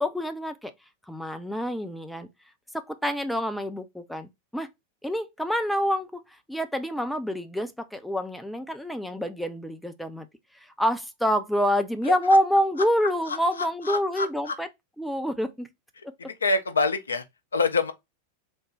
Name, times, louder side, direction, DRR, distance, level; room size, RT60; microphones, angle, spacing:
voice 1, 0.0-0.7 1.1-2.3 2.7-4.7 5.0-10.3 10.6-14.7 15.0-15.7, equal, ahead, 0.4 m, -27 dB
voice 2, 13.9-14.6 16.2-17.2 17.5-17.9, left 3 dB, 75° left, 0.5 m, -25 dB
3.4 x 2.1 x 3.2 m
figure-of-eight pair, 90°, 0 cm